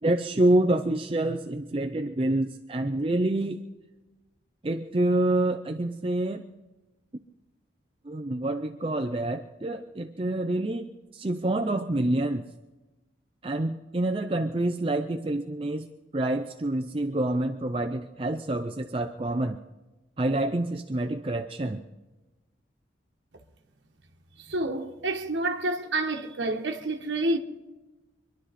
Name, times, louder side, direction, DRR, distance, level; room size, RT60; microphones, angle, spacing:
voice 1, 0.0-3.6 4.6-6.4 7.1-7.2 8.0-12.5 13.4-19.6 20.2-21.8, right 1 dB, 30° right, 0.5 m, -27 dB
voice 2, 24.4-27.4, right 2 dB, 75° right, 1.2 m, -28 dB
25.0 x 11.5 x 4.2 m
head